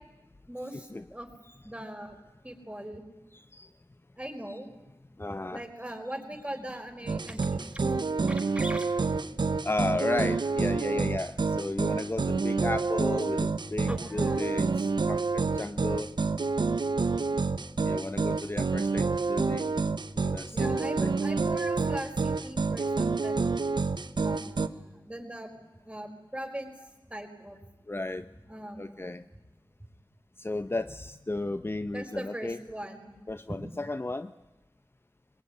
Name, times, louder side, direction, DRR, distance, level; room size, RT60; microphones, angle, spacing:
voice 1, 0.5-1.3 1.6-2.2 2.4-3.0 4.2-4.7 5.5-7.9 8.2-9.1 13.9-14.5 17.1-17.6 20.5-23.5 24.2-25.5 25.8-27.6 28.5-29.1 31.9-33.2 33.5-33.6, right 1 dB, 15° right, 4 dB, 4.9 m, -40 dB
voice 2, 5.2-5.6 9.6-16.2 17.8-19.8 20.1-21.1 27.9-28.3 28.8-29.3 30.4-32.6 33.3-34.3, left 2 dB, 30° left, 10 dB, 0.8 m, -34 dB
sound 1, 7.1-24.7, right 4 dB, 65° right, 1.0 m, -28 dB
22.0 x 21.0 x 9.9 m, 1.0 s
wide cardioid pair, 55°, 8 cm